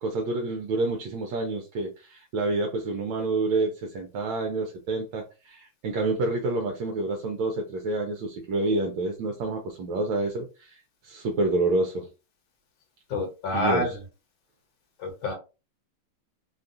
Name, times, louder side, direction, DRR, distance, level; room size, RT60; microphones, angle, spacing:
voice 1, 0.0-12.1 13.5-13.9, right 2 dB, 75° right, 2 dB, 1.3 m, -28 dB
voice 2, 13.1-14.0 15.0-15.4, left 2 dB, 55° left, 1 dB, 1.3 m, -27 dB
3.5 x 2.3 x 2.6 m, 0.30 s
omnidirectional pair, 2.4 m